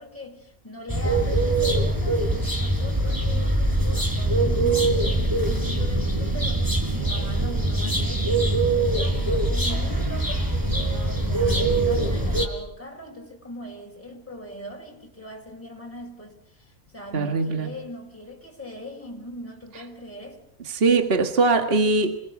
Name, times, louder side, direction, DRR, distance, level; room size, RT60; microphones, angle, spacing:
voice 1, 0.0-20.4, left 1 dB, 10° left, 5.0 m, -40 dB
sound 1, 0.9-12.5, right 2 dB, 15° right, 4.5 m, -23 dB
voice 2, 17.1-17.7 20.7-22.2, right 3 dB, 40° right, 2.0 m, -21 dB
27.5 x 20.5 x 8.4 m
omnidirectional pair, 1.5 m